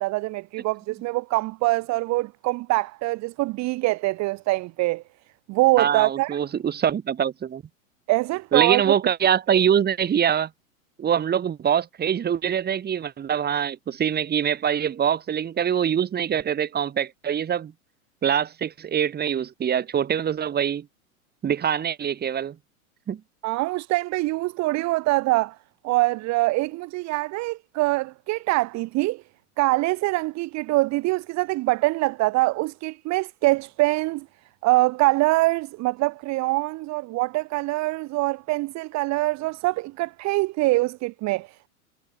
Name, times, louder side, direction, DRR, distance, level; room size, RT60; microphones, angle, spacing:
voice 1, 0.0-5.0 5.5-6.4 8.1-8.9 9.5-9.6 23.4-25.6 25.8-29.2 29.6-34.3 34.6-41.7, right 21 dB, 40° right, 2.1 m, -24 dB
voice 2, 5.8-7.6 8.5-10.5 11.0-17.7 18.2-20.9 21.4-22.5 23.1-23.2, right 8 dB, 20° right, 3.4 m, -24 dB
hypercardioid pair, 105°, 43 cm